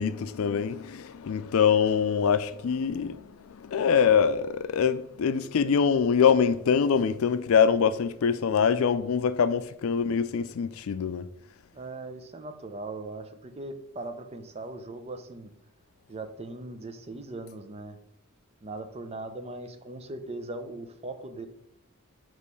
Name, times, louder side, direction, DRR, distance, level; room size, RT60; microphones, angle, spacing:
voice 1, 0.0-11.3, left 6 dB, 80° left, 0.4 m, -24 dB
voice 2, 11.7-15.5 16.1-18.0 18.6-21.5, right 2 dB, 30° right, 0.6 m, -39 dB
6.4 x 3.1 x 5.3 m
head